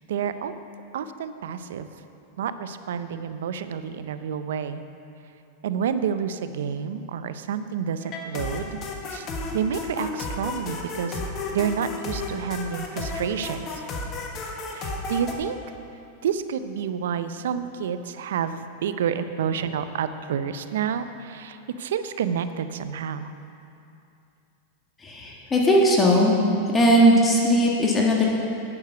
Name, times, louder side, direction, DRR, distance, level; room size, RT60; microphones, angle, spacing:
voice 1, 0.1-0.5 0.9-1.9 2.4-4.8 5.6-8.8 9.1-9.3 9.5-11.2 11.5-13.8 14.7-15.6 16.2-23.3, right 7 dB, 80° right, 11 dB, 0.5 m, -29 dB
sound 1, 8.0-15.3, left 3 dB, 40° left, 1.3 m, -33 dB
voice 2, 25.0-26.3 26.7-28.2, equal, 20° left, -2 dB, 1.5 m, -18 dB
9.7 x 6.6 x 6.8 m, 2.7 s
hypercardioid pair, 115°, 0 cm